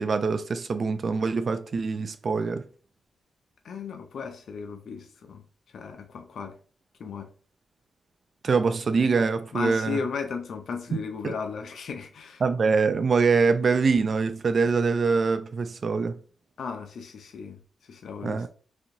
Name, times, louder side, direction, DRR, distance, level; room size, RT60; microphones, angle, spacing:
voice 1, 0.0-2.6 8.4-10.0 10.9-11.0 11.2-11.3 12.4-16.2 18.2-18.5, right 4 dB, 55° right, 0.4 m, -24 dB
voice 2, 3.6-5.4 5.7-6.6 7.0-7.3 9.5-12.4 16.6-18.5, left 5 dB, 80° left, 0.5 m, -35 dB
4.2 x 2.7 x 2.6 m
cardioid pair, 75°, 0 cm